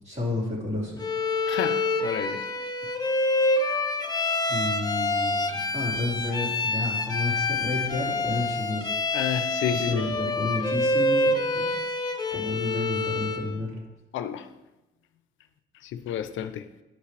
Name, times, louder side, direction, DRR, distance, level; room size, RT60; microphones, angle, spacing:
voice 1, 0.0-1.1 4.5-8.9 9.7-11.7 12.3-13.8, left 2 dB, 35° right, 3.0 m, -31 dB
Bowed string instrument, 1.0-13.5, left 2 dB, 20° left, 0.8 m, -27 dB
voice 2, 1.5-2.4 9.1-10.0 14.1-14.5 15.8-16.7, left 9 dB, 75° left, 0.5 m, -30 dB
11.0 x 5.7 x 3.3 m
cardioid pair, 90°, 20 cm